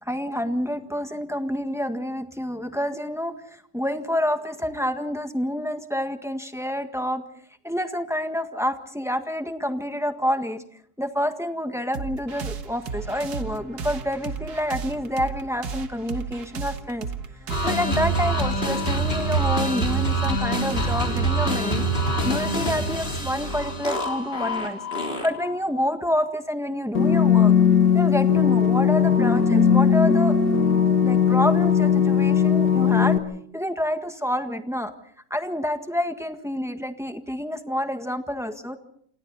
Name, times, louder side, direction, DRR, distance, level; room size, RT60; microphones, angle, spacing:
voice 1, 0.0-7.2 7.6-10.6 11.0-17.1 17.6-21.8 22.2-27.5 27.9-30.4 31.0-33.2 33.5-34.9 35.3-38.8, equal, ahead, 7 dB, 1.5 m, -28 dB
sound 1, 11.9-23.0, right 6 dB, 75° right, 2.0 m, -35 dB
sound 2, 17.5-25.6, right 1 dB, 35° left, 4.0 m, -25 dB
sound 3, 26.9-33.2, left 7 dB, 90° left, 2.5 m, -18 dB
28.0 x 28.0 x 4.1 m, 0.64 s
omnidirectional pair, 1.7 m